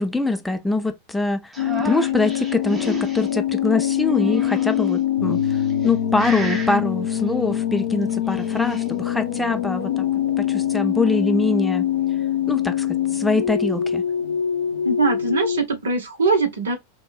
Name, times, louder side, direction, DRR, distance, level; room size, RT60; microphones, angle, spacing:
voice 1, 0.0-5.4 5.8-10.0 10.4-11.9 12.5-14.0, left 2 dB, 5° left, 0.4 m, -24 dB
sound 1, 1.5-3.3 4.1-4.9 5.6-5.9 6.2-6.8 8.1-8.8, right 1 dB, 15° right, 0.9 m, -33 dB
sound 2, 1.6-15.6, left 11 dB, 65° left, 0.7 m, -24 dB
sound 3, 5.2-11.4, right 3 dB, 80° right, 0.3 m, -37 dB
voice 2, 14.8-16.8, right 3 dB, 65° right, 0.9 m, -21 dB
4.1 x 2.2 x 2.4 m
figure-of-eight pair, 90°, 0 cm